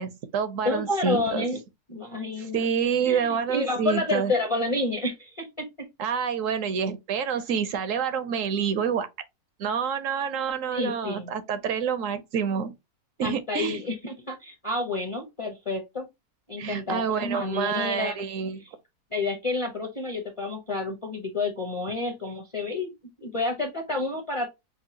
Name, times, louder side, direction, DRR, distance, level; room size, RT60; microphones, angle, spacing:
voice 1, 0.0-1.4 2.4-4.3 6.0-9.1 9.6-12.7 13.2-13.8 16.6-18.6, right 7 dB, 65° right, 0.9 m, -28 dB
voice 2, 0.6-1.6 1.9-2.7 3.0-5.7 10.7-11.3 13.2-16.1 16.5-18.1 19.1-22.9 23.2-24.5, left 2 dB, 30° left, 0.6 m, -29 dB
5.3 x 2.3 x 2.6 m
omnidirectional pair, 1.6 m